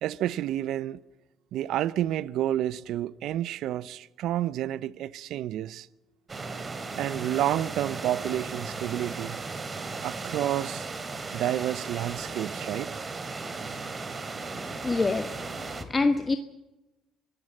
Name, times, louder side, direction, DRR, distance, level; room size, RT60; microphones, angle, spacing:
voice 1, 0.0-1.0 1.5-5.9 7.0-9.4 10.0-10.8 11.3-13.0, right 12 dB, 70° right, 0.6 m, -30 dB
sound 1, 6.3-15.8, right 4 dB, 30° right, 2.7 m, -36 dB
voice 2, 14.5-16.4, left 3 dB, 25° left, 1.3 m, -27 dB
24.5 x 16.0 x 7.5 m
supercardioid pair, 80°, 0 cm